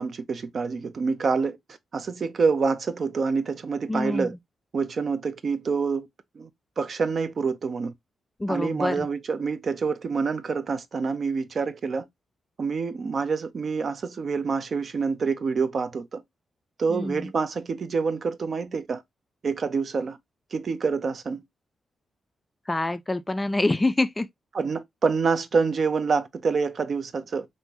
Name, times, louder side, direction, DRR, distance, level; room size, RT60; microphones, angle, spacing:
voice 1, 0.0-1.6 1.9-4.3 4.7-6.1 6.4-6.5 6.8-7.9 8.5-12.1 12.6-16.2 16.8-19.0 19.4-20.2 20.5-21.4 24.5-27.5, right 5 dB, 50° right, 0.5 m, -27 dB
voice 2, 3.9-4.3 8.4-9.1 16.9-17.3 22.7-24.3, left 2 dB, 20° left, 0.3 m, -26 dB
3.5 x 2.5 x 2.8 m
cardioid pair, 95°, 0 cm